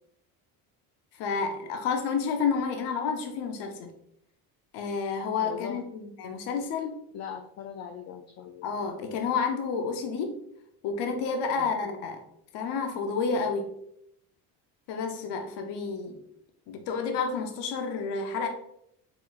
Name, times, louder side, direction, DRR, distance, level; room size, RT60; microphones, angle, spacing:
voice 1, 1.2-3.9 4.7-7.0 8.6-10.4 10.8-12.2 12.5-13.7 14.9-16.2 16.7-18.5, left 5 dB, 75° left, 5 dB, 0.8 m, -30 dB
voice 2, 5.4-5.8 7.1-8.7 11.6-11.9, left 8 dB, 40° left, 6 dB, 0.4 m, -40 dB
4.5 x 3.8 x 2.4 m, 0.73 s
supercardioid pair, 95°, 41 cm